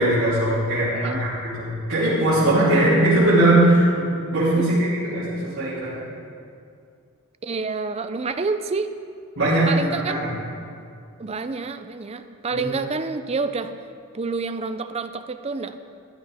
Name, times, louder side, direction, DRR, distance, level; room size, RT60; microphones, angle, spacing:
voice 1, 0.0-6.1 9.3-10.3 12.5-12.6, right 1 dB, 60° right, -13 dB, 3.5 m, -20 dB
voice 2, 7.4-8.9 9.7-10.2 11.2-13.7 14.1-15.8, right 4 dB, 30° right, 9 dB, 0.4 m, -28 dB
15.0 x 10.5 x 3.5 m, 2.3 s
head